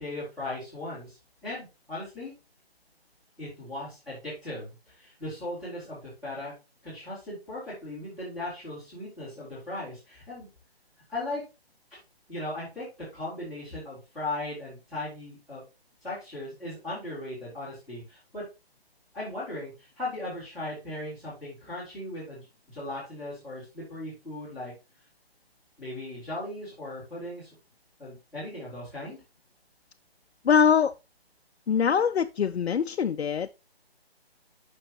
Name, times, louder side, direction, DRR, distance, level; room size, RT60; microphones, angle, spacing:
voice 1, 0.0-2.3 3.4-6.5 6.8-10.5 11.1-11.4 12.3-15.6 16.0-18.4 19.1-24.7 25.8-27.5 28.0-29.2, left 1 dB, ahead, 2.8 m, -38 dB
voice 2, 30.4-30.9 31.7-33.6, left 7 dB, 80° left, 0.5 m, -23 dB
7.7 x 6.2 x 2.9 m
figure-of-eight pair, 165°, 32 cm